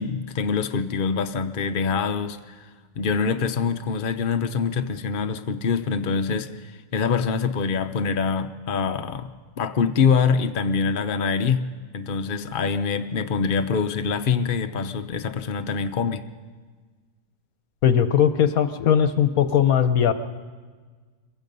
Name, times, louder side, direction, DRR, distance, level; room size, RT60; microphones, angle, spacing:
voice 1, 0.0-2.7 3.0-9.3 9.6-11.6 11.9-16.2, left 5 dB, 45° left, 8 dB, 0.7 m, -24 dB
voice 2, 17.8-20.1, left 8 dB, 65° left, 10 dB, 1.2 m, -19 dB
26.0 x 23.0 x 5.4 m, 1.5 s
omnidirectional pair, 1.7 m